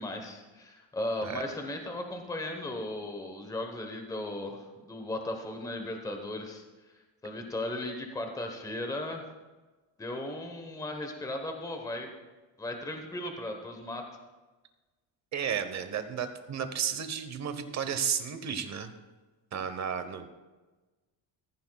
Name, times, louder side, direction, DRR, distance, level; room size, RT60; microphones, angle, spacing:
voice 1, 0.0-6.6 7.2-9.2 10.0-12.1 12.6-14.0, left 1 dB, 10° left, 4 dB, 1.0 m, -36 dB
voice 2, 15.3-18.9 19.5-20.3, right 7 dB, 35° right, 9 dB, 1.0 m, -33 dB
15.0 x 14.5 x 2.3 m, 1.2 s
cardioid pair, 150°, 45 cm